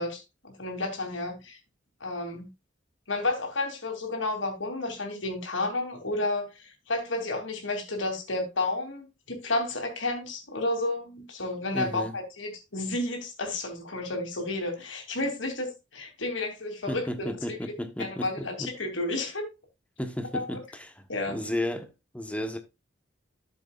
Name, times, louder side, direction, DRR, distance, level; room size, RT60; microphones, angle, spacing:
voice 1, 0.0-1.6 2.0-2.5 3.1-17.7 18.0-19.5 20.3-20.6 21.1-21.4, left 2 dB, 80° left, 2.8 m, -31 dB
voice 2, 11.7-12.1 16.9-18.7 20.0-22.6, left 1 dB, 5° left, 1.0 m, -34 dB
12.5 x 7.0 x 2.4 m
head